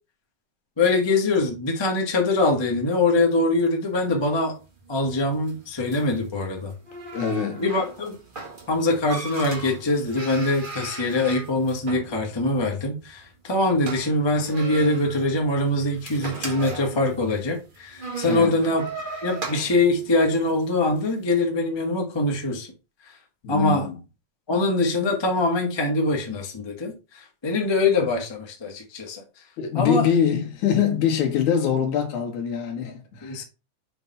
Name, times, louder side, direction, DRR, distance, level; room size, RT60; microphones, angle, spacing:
voice 1, 0.8-4.5 4.9-6.7 7.6-8.2 8.7-18.9 19.2-22.7 23.5-23.9 24.5-29.2 29.7-30.0 33.2-33.4, left 2 dB, 30° left, 0.4 m, -23 dB
sound 1, 3.9-21.1, right 3 dB, 45° right, 0.6 m, -38 dB
voice 2, 7.1-7.6 18.3-18.6 23.4-24.0 29.6-33.4, left 7 dB, 75° left, 2.8 m, -24 dB
6.9 x 3.4 x 5.6 m
omnidirectional pair, 3.5 m